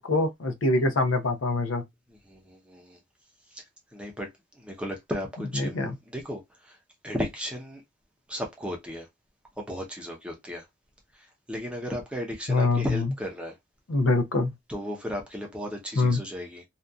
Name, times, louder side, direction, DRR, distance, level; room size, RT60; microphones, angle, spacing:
voice 1, 0.0-1.8 5.7-5.9 12.5-13.0 13.9-14.5 16.0-16.2, left 2 dB, 80° left, 0.6 m, -24 dB
voice 2, 2.1-3.0 3.5-3.6 3.9-4.3 4.5-6.8 7.0-7.8 8.3-9.1 9.6-10.6 11.1-13.6 14.7-16.6, equal, 5° right, 0.6 m, -35 dB
2.7 x 2.3 x 2.3 m
head